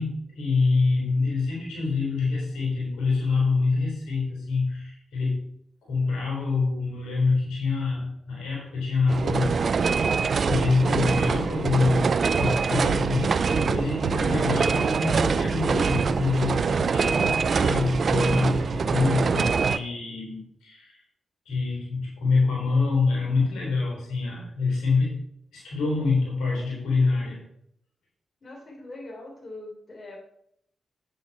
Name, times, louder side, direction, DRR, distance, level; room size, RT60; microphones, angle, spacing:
voice 1, 0.0-5.4 5.8-9.7 10.5-21.0 21.5-25.2 25.5-27.4, left 4 dB, 85° left, -3 dB, 4.2 m, -26 dB
sound 1, 9.1-19.8, right 5 dB, 60° right, 0.4 m, -24 dB
voice 2, 28.4-30.2, left 2 dB, 50° left, -1 dB, 3.5 m, -42 dB
9.3 x 7.9 x 4.4 m, 0.73 s
supercardioid pair, 45°, 0 cm